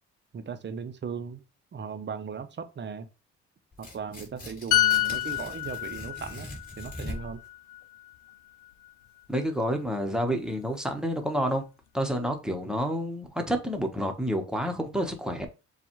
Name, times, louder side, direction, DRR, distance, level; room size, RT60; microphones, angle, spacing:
voice 1, 0.3-1.4 1.7-3.1 3.8-6.5 6.8-7.4, right 6 dB, 35° right, 0.6 m, -37 dB
Tearing, 3.7-7.5, left 2 dB, 30° left, 2.7 m, -41 dB
sound 1, 4.7-8.3 8.6-8.9, left 14 dB, 85° left, 0.5 m, -28 dB
voice 2, 9.3-11.6 11.9-15.5, equal, ahead, 1.0 m, -29 dB
6.9 x 2.4 x 3.0 m
cardioid pair, 90°, 30 cm